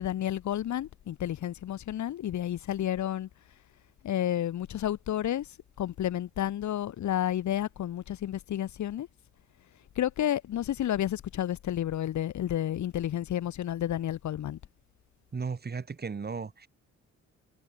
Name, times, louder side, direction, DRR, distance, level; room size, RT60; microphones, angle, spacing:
voice 1, 0.0-3.3 4.0-5.5 5.8-9.1 10.0-14.6, left 11 dB, 70° left, 2.7 m, -31 dB
voice 2, 15.3-16.7, right 5 dB, 35° right, 3.8 m, -35 dB
cardioid pair, 90°, 30 cm